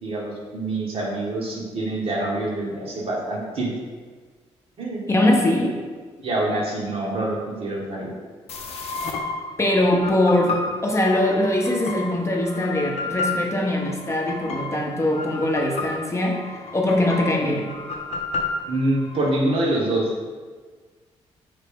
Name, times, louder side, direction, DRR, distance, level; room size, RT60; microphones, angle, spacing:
voice 1, 0.0-3.7 4.8-5.0 6.2-8.1 18.7-20.3, right 1 dB, 55° right, -3 dB, 1.1 m, -25 dB
voice 2, 5.1-5.8 9.6-16.5 16.7-17.7, left 1 dB, 25° left, 0 dB, 0.7 m, -22 dB
sound 1, 8.5-19.3, left 3 dB, 65° left, 0.5 m, -32 dB
4.0 x 3.3 x 3.4 m, 1.5 s
cardioid pair, 70°, 11 cm